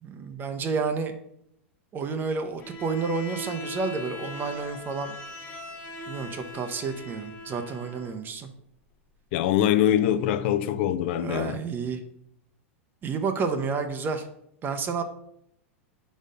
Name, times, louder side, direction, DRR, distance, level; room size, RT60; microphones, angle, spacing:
voice 1, 0.0-1.1 1.9-5.2 6.1-8.5 11.2-12.0 13.0-14.2 14.6-15.0, right 4 dB, 30° right, 0.7 m, -30 dB
Bowed string instrument, 2.6-8.2, left 1 dB, 25° left, 1.4 m, -40 dB
voice 2, 9.3-11.6, left 11 dB, 60° left, 0.6 m, -23 dB
5.0 x 4.1 x 5.2 m
hypercardioid pair, 110°, 7 cm